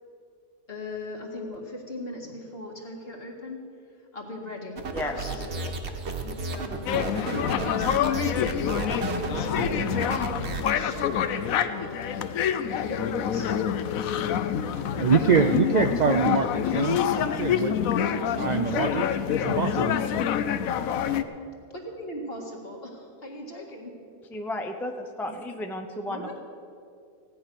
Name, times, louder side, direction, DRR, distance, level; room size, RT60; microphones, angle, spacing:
voice 1, 0.7-3.6 4.1-4.8 5.0-8.6 9.2-12.2 12.6-14.3 14.7-16.0 18.0-18.4 20.1-20.3 21.7-23.9 24.8-24.9 26.0-26.4, left 1 dB, 45° left, 0 dB, 2.2 m, -39 dB
sound 1, 4.8-10.7, right 3 dB, 55° right, 1.3 m, -33 dB
voice 2, 4.9-5.7 6.5-6.6 24.3-26.4, left 1 dB, ahead, 4 dB, 0.4 m, -34 dB
sound 2, 6.9-21.2, left 9 dB, 80° left, 1.1 m, -27 dB
voice 3, 15.0-17.8 18.4-19.0 19.4-19.9, right 5 dB, 75° right, 6 dB, 0.4 m, -24 dB
16.0 x 9.7 x 6.1 m, 2.5 s
omnidirectional pair, 1.5 m